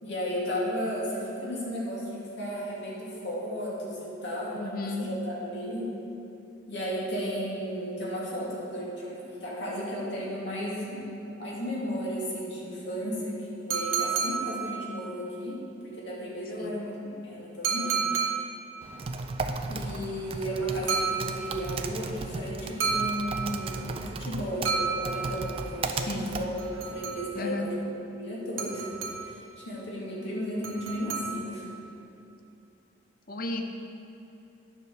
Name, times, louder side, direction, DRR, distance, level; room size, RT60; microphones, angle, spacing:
voice 1, 0.0-5.9 6.7-11.1 11.3-17.0 17.2-18.1 19.6-27.7 28.1-28.9 29.2-31.7, equal, 65° left, -5 dB, 2.2 m, -34 dB
voice 2, 4.6-5.1 16.6-16.7 26.0-26.4 27.4-27.7 33.3-33.6, left 2 dB, 45° left, 5 dB, 0.6 m, -33 dB
sound 1, 13.7-15.2 17.6-18.8 20.9-21.8 22.8-23.8 24.7-25.7 26.6-27.5 28.6-29.5 30.6-31.7, right 6 dB, 85° right, 1.1 m, -31 dB
Typing, 18.8-27.0, right 3 dB, 30° right, 0.3 m, -36 dB
9.5 x 5.0 x 6.6 m, 2.8 s
head